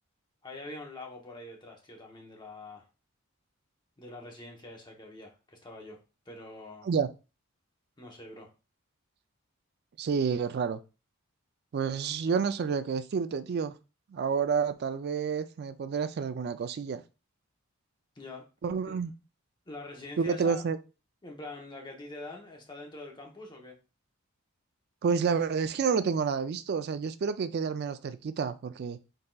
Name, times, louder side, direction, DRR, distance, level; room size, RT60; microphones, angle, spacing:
voice 1, 0.4-2.9 4.0-6.0 6.3-6.9 8.0-8.5 18.1-18.5 18.9-19.0 19.7-20.6 21.2-23.8, left 2 dB, 20° left, 0.9 m, -44 dB
voice 2, 10.0-10.8 11.7-13.7 14.1-17.0 18.6-19.1 20.2-20.8 25.0-29.0, right 6 dB, 50° right, 0.3 m, -29 dB
4.0 x 3.8 x 2.3 m
head